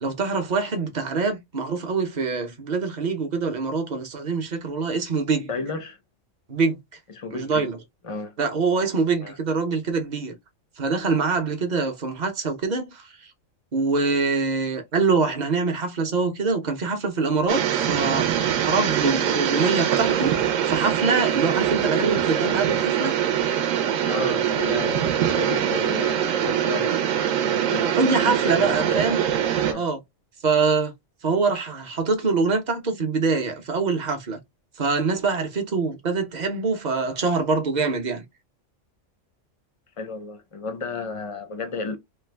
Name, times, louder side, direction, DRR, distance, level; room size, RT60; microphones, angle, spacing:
voice 1, 0.0-5.5 6.5-6.8 7.3-7.8 8.4-10.3 10.8-13.0 13.7-18.3 18.6-20.3 20.7-23.1 27.8-29.2 29.7-30.0 30.4-30.9 31.2-34.4 34.8-38.2, right 4 dB, 45° right, 0.7 m, -24 dB
voice 2, 5.5-6.0 7.1-7.7 8.0-8.4 9.2-9.4 24.0-27.1 27.4-27.9 28.2-29.3 29.5-29.9 40.0-42.0, left 4 dB, 50° left, 0.4 m, -32 dB
sound 1, 17.5-29.7, right 9 dB, 75° right, 1.0 m, -23 dB
3.2 x 2.1 x 3.3 m
omnidirectional pair, 1.4 m